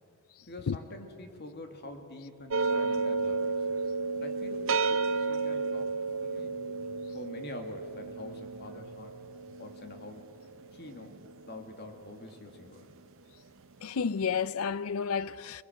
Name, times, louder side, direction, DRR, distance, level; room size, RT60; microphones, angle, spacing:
voice 1, 0.5-3.5 4.2-6.6 7.1-9.2 9.6-10.3 10.7-12.9, left 1 dB, 45° left, 2.2 m, -46 dB
sound 1, 2.5-11.7, right 4 dB, 60° right, 0.7 m, -32 dB
voice 2, 13.8-15.6, left 6 dB, 70° left, 0.5 m, -31 dB
25.0 x 20.0 x 7.8 m
head